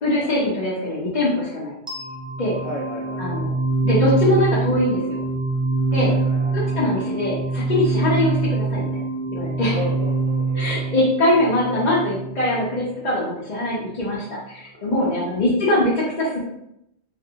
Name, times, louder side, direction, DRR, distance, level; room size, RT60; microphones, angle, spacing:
voice 1, 0.0-1.8 2.4-2.5 3.2-3.5 3.8-5.2 5.9-6.1 6.7-9.0 9.3-9.7 10.6-16.4, left 1 dB, 45° left, -7 dB, 0.8 m, -22 dB
sound 1, 1.9-12.8, right 3 dB, 5° right, 0.6 m, -24 dB
voice 2, 2.6-3.4 5.9-6.8 9.7-11.0 14.5-15.2, right 1 dB, 80° right, -7 dB, 1.5 m, -35 dB
3.3 x 2.5 x 2.8 m, 0.79 s
omnidirectional pair, 1.1 m